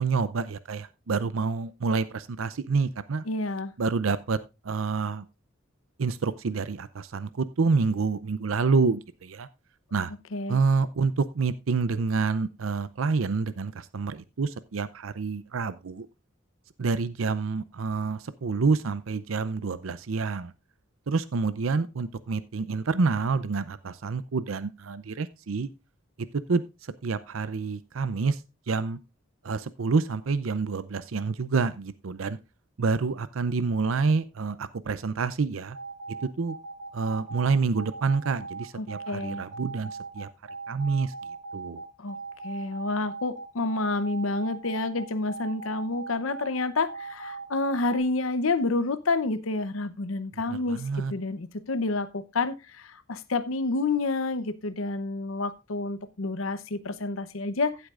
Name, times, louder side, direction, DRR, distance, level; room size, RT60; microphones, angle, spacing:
voice 1, 0.0-3.2 3.8-4.4 4.6-5.2 6.0-9.5 9.9-10.1 10.5-16.1 16.8-20.5 21.1-25.7 26.2-26.6 27.0-28.4 28.7-29.0 29.4-32.4 32.8-35.8 36.4-36.6 36.9-40.3 40.7-41.1 41.5-41.8 50.5-51.1, right 4 dB, 85° right, 0.6 m, -28 dB
voice 2, 3.2-3.7 10.3-10.6 38.7-39.4 42.0-42.2 42.4-50.8 51.1-57.9, left 3 dB, 85° left, 0.8 m, -29 dB
sound 1, 35.7-48.0, right 4 dB, 55° right, 2.8 m, -39 dB
15.5 x 8.1 x 2.5 m
head